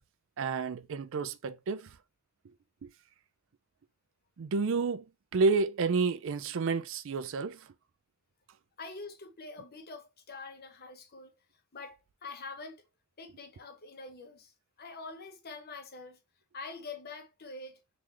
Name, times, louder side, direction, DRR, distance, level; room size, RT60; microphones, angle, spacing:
voice 1, 0.4-1.9 2.8-2.9 4.4-5.0 5.3-7.6, right 4 dB, 65° right, 0.4 m, -30 dB
voice 2, 8.8-11.3 11.7-12.0 12.2-12.8 13.2-14.5 14.8-16.2 16.5-17.8, left 3 dB, 50° left, 0.9 m, -45 dB
3.8 x 3.3 x 2.9 m
head